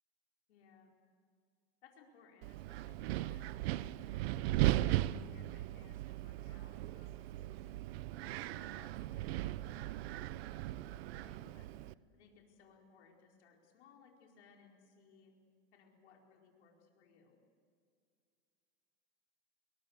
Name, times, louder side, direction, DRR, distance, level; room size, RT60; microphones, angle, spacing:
voice 1, 0.5-0.9 1.8-3.4 3.7-4.3 4.8-7.7 8.2-11.7 12.1-15.3 15.7-17.4, left 5 dB, 85° left, 0 dB, 4.7 m, -64 dB
Wind, 2.4-11.9, right 16 dB, 70° right, 0.8 m, -37 dB
22.5 x 21.5 x 8.2 m, 2.2 s
supercardioid pair, 120°, 33 cm